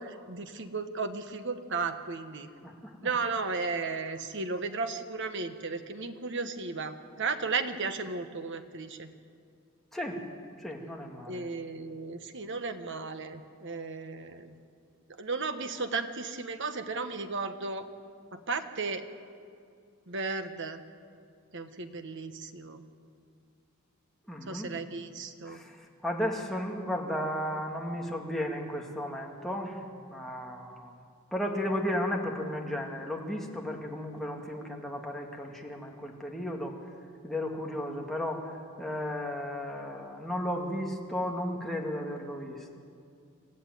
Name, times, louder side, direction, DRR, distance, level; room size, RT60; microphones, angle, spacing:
voice 1, 0.0-2.5 3.0-9.1 11.3-14.5 15.2-17.9 18.3-19.0 20.1-20.8 21.5-22.8 24.5-25.6, right 4 dB, 55° right, 8 dB, 1.4 m, -35 dB
voice 2, 2.6-3.1 9.9-10.2 10.6-11.5 24.3-24.7 25.4-29.8 30.1-31.0 31.3-36.8 37.2-38.5 38.8-42.8, left 1 dB, ahead, -1 dB, 2.3 m, -34 dB
27.0 x 14.5 x 9.4 m, 2.3 s
head